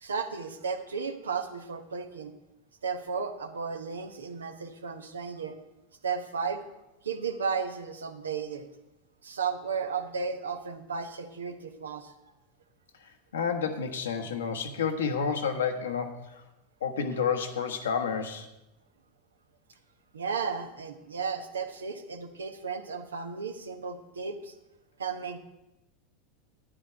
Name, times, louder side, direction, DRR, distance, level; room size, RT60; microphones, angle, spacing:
voice 1, 0.0-2.3 2.8-5.5 6.0-6.6 7.0-8.7 9.2-12.1 20.1-24.5 25.0-25.4, right 5 dB, 80° right, 7 dB, 1.0 m, -34 dB
voice 2, 13.0-16.4 16.8-18.5, left 6 dB, 75° left, 5 dB, 1.1 m, -30 dB
11.0 x 9.8 x 4.6 m, 0.92 s
figure-of-eight pair, 85°, 0 cm